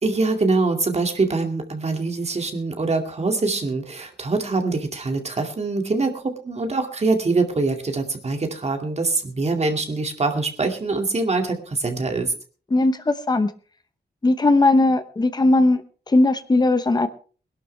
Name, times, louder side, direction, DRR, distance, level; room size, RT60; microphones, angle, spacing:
voice 1, 0.0-12.3, right 3 dB, 40° right, 4 dB, 2.3 m, -24 dB
voice 2, 12.7-13.5 14.2-17.1, left 2 dB, 25° left, 10 dB, 0.9 m, -18 dB
21.0 x 12.0 x 3.3 m, 0.40 s
wide cardioid pair, 155°, 17 cm